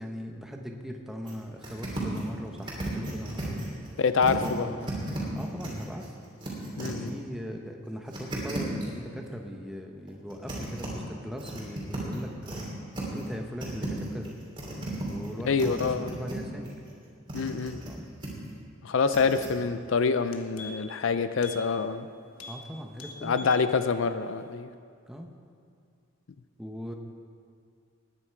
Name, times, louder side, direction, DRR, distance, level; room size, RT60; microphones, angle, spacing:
voice 1, 0.0-3.6 4.3-4.8 5.3-6.1 6.8-12.8 13.1-14.3 15.1-16.7 17.8-18.1 22.5-23.5 25.1-25.3 26.6-26.9, equal, ahead, 2 dB, 0.8 m, -39 dB
sound 1, 1.3-1.4 1.6-2.3 2.6-4.5 4.8-7.1 8.1-8.9 10.1-10.9 11.4-12.6 12.9-13.4 13.6-16.4 16.6-17.9 18.2-18.5 19.1-19.5, right 1 dB, 20° right, 2.9 m, -35 dB
voice 2, 4.0-4.9 6.8-7.1 15.4-16.2 17.3-17.8 18.8-22.1 23.2-24.7, left 5 dB, 65° left, 11 dB, 0.5 m, -26 dB
sound 2, 19.7-19.8 20.1-21.0 21.4-21.6 21.9-22.1 22.3-22.6 22.9-23.7 24.0-24.1, left 3 dB, 85° left, 1.2 m, -44 dB
19.5 x 9.9 x 4.6 m, 2.3 s
head